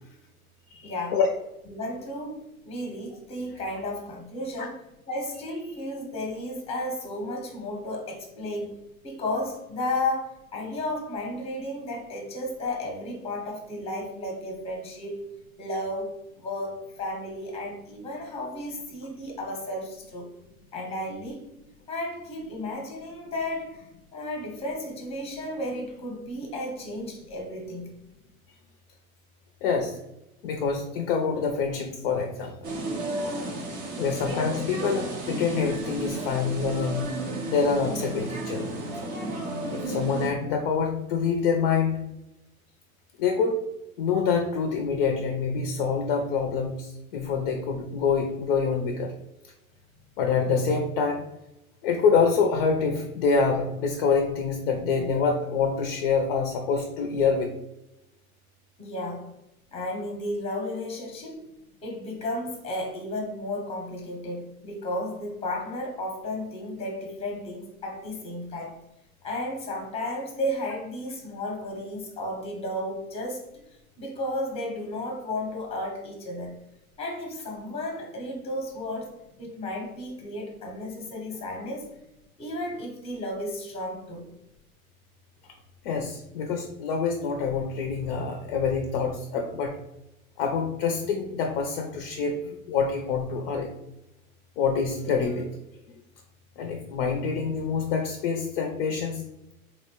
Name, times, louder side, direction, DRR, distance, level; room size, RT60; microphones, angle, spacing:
voice 1, 0.7-1.2 1.7-2.4 2.6-4.8 5.1-15.3 15.6-20.3 20.7-21.4 21.9-23.9 24.1-28.0 58.8-59.3 59.7-61.4 61.8-68.8 69.2-73.4 74.0-76.6 77.0-81.9 82.4-84.3, left 1 dB, 15° left, 1 dB, 0.8 m, -33 dB
voice 2, 29.6-30.0 30.4-32.7 34.0-37.1 37.5-38.7 39.7-42.0 43.2-43.6 44.0-49.1 49.4-49.5 50.2-51.2 51.8-57.5 85.8-89.7 90.4-93.7 94.6-95.6 96.6-99.2, left 5 dB, 45° left, 4 dB, 0.5 m, -26 dB
sound 1, 32.6-40.3, right 1 dB, 20° right, 0.4 m, -33 dB
4.1 x 2.1 x 2.9 m, 0.91 s
hypercardioid pair, 130°, 43 cm